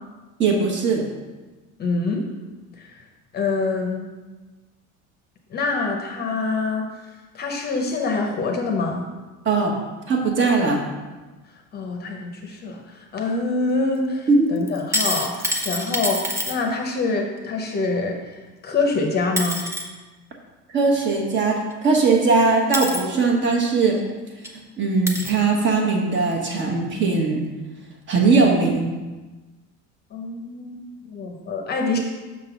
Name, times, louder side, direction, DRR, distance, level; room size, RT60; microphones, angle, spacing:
voice 1, 0.4-1.0 9.4-9.7 10.1-10.8 14.3-14.5 20.7-24.0 24.8-27.4 28.1-28.9, right 4 dB, 35° right, 1 dB, 1.2 m, -19 dB
voice 2, 1.8-2.3 2.8-2.9 3.3-4.1 5.5-7.0 7.3-9.1 11.7-18.3 18.6-19.6 30.1-32.0, left 3 dB, 30° left, 2 dB, 0.7 m, -25 dB
sound 1, 14.7-16.6 18.8-18.9 19.4-19.8 21.7-21.8 22.7-23.0 24.0-24.1 24.4-24.5 25.1-25.4 26.2-26.3, equal, 10° right, 0.5 m, -26 dB
6.5 x 3.8 x 5.8 m, 1.2 s
cardioid pair, 160°, 34 cm